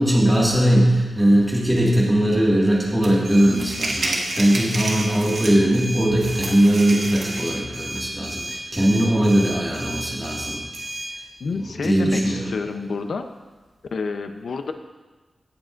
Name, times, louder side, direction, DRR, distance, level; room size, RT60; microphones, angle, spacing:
voice 1, 0.0-10.6 11.6-12.5, right 1 dB, 10° right, -5 dB, 2.0 m, -20 dB
sound 1, 3.0-3.1 3.5-5.8 6.2-7.6, right 2 dB, 70° right, 1.6 m, -30 dB
sound 2, 3.2-11.1, right 1 dB, 45° right, 3.0 m, -34 dB
voice 2, 11.4-13.3 13.9-14.7, left 4 dB, 75° left, 7 dB, 0.7 m, -29 dB
17.5 x 7.6 x 2.6 m, 1.3 s
wide cardioid pair, 150°, 0 cm